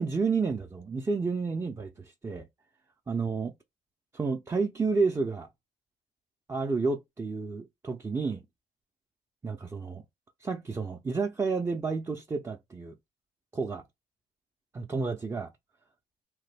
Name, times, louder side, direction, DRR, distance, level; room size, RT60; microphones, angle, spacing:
voice 1, 0.0-2.5 3.1-3.5 4.1-5.5 6.5-8.4 9.4-10.0 10.4-12.9 13.5-13.8 14.7-15.5, right 4 dB, 15° right, 0.4 m, -30 dB
2.9 x 2.1 x 3.2 m
cardioid pair, 110°, 17 cm